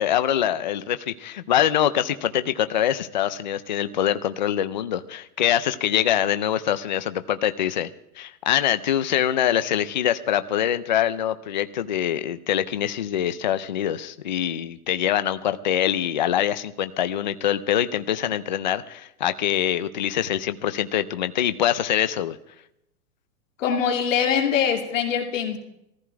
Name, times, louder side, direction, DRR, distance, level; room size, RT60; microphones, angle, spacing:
voice 1, 0.0-7.9 8.2-22.4, left 10 dB, 35° left, 11 dB, 0.5 m, -24 dB
voice 2, 23.6-25.6, left 7 dB, 55° left, 3 dB, 2.6 m, -23 dB
18.0 x 15.0 x 4.7 m, 0.81 s
hypercardioid pair, 175°, 44 cm